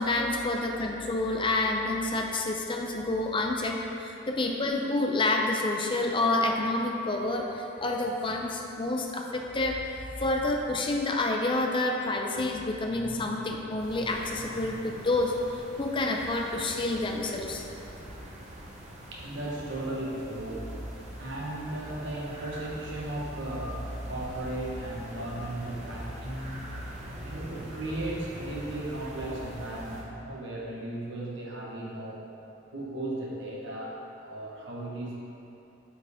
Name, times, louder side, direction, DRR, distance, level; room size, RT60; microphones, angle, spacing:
voice 1, 0.0-17.6, left 2 dB, 25° left, 1 dB, 0.6 m, -28 dB
sound 1, 13.8-30.0, right 1 dB, 35° right, 0.9 m, -42 dB
voice 2, 19.1-20.7 21.2-26.7 27.2-32.2 32.7-35.1, right 1 dB, 65° right, -4 dB, 1.3 m, -36 dB
9.0 x 4.6 x 3.6 m, 2.9 s
head